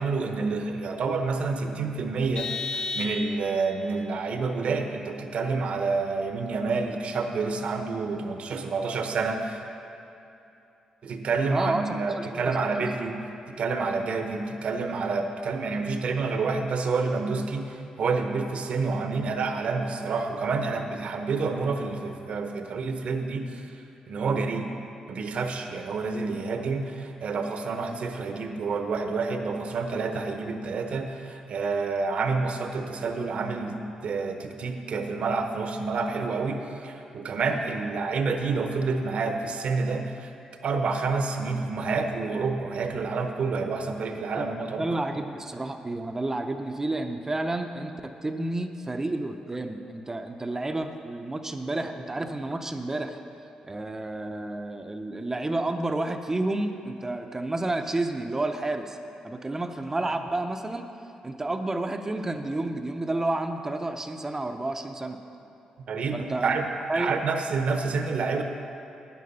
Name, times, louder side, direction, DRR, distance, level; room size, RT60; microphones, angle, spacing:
voice 1, 0.0-9.6 11.0-24.7 25.1-40.3 40.6-44.8 45.1-45.2 65.9-66.6 66.9-68.4, right 4 dB, 65° right, 5 dB, 0.9 m, -28 dB
Vehicle horn car horn honking, 2.3-3.7, left 3 dB, 35° left, 0.7 m, -33 dB
voice 2, 11.5-12.5 24.2-24.4 44.4-44.5 44.8-53.2 53.6-59.0 59.2-60.9 61.2-65.2 66.1-66.5 66.9-67.1, right 2 dB, 20° right, 6 dB, 0.6 m, -30 dB
9.4 x 9.4 x 5.5 m, 2.8 s
cardioid pair, 90°, 2 cm